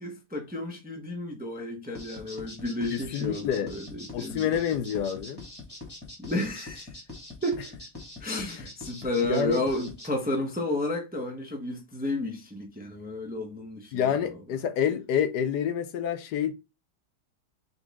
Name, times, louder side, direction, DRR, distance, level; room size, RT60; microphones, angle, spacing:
voice 1, 0.0-4.5 6.2-6.9 7.4-7.7 8.2-14.1, left 1 dB, 10° right, 0.6 m, -32 dB
sound 1, 1.9-10.1, left 2 dB, 15° left, 1.3 m, -43 dB
voice 2, 2.9-3.7 4.1-5.4 9.2-9.6 13.9-16.5, left 8 dB, 85° left, 1.2 m, -28 dB
4.0 x 3.7 x 3.6 m
omnidirectional pair, 1.7 m